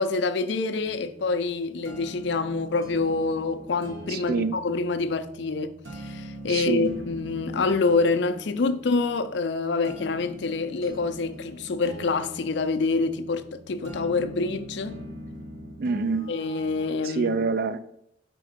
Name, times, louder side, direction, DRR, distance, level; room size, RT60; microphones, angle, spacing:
voice 1, 0.0-15.0 16.3-17.4, left 3 dB, 60° left, 0.4 m, -26 dB
sound 1, 0.8-16.9, right 1 dB, 80° right, 1.1 m, -42 dB
voice 2, 4.1-4.6 6.5-7.0 15.8-16.3 17.0-17.9, right 4 dB, 50° right, 0.3 m, -26 dB
4.6 x 4.1 x 5.0 m
head